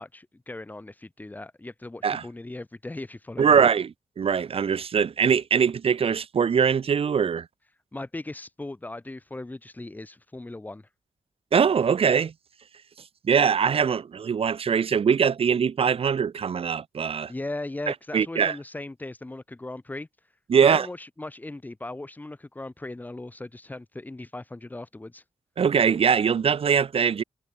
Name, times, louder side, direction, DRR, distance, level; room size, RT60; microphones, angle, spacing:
voice 1, 0.0-3.6 7.9-10.9 17.3-20.1 20.6-25.2, left 2 dB, 15° left, 4.9 m, -38 dB
voice 2, 3.4-3.9 4.2-7.5 11.5-12.3 13.2-17.3 17.9-18.5 20.5-20.9 25.6-27.2, right 7 dB, 60° right, 2.6 m, -22 dB
wide cardioid pair, 160°, 11 cm